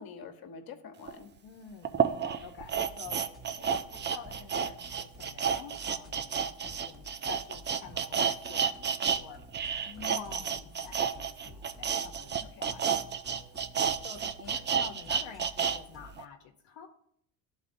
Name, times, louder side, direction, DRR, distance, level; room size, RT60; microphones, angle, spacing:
voice 1, 0.0-1.3 9.8-10.6 12.6-12.7, left 6 dB, 50° left, 6 dB, 1.2 m, -46 dB
sound 1, 1.1-1.2 1.8-9.2 9.5-15.8 16.2-16.3, right 7 dB, 25° right, 0.4 m, -31 dB
voice 2, 1.4-8.2 8.5-9.7 10.0-13.1 14.0-16.9, left 7 dB, 70° left, 1 dB, 0.9 m, -49 dB
sound 2, 2.6-16.2, equal, ahead, 1.0 m, -52 dB
12.0 x 4.2 x 2.6 m, 0.68 s
supercardioid pair, 70°, 47 cm